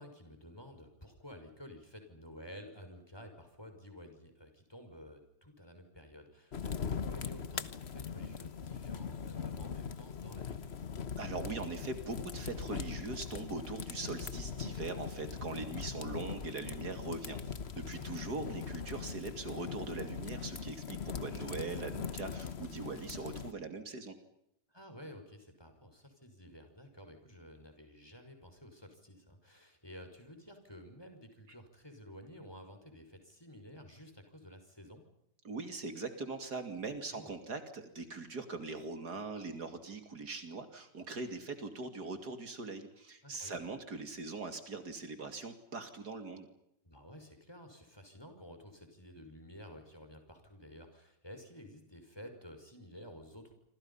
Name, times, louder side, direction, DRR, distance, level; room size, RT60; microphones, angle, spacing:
voice 1, 0.0-10.6 17.9-18.1 24.7-35.0 37.1-37.3 43.2-43.7 46.8-53.5, equal, 15° left, 6 dB, 5.9 m, -52 dB
sound 1, 6.5-23.5, left 6 dB, 45° left, 1.3 m, -41 dB
voice 2, 11.2-24.1 35.4-46.5, right 3 dB, 75° right, 8 dB, 3.2 m, -41 dB
27.5 x 27.0 x 5.7 m, 0.77 s
omnidirectional pair, 1.7 m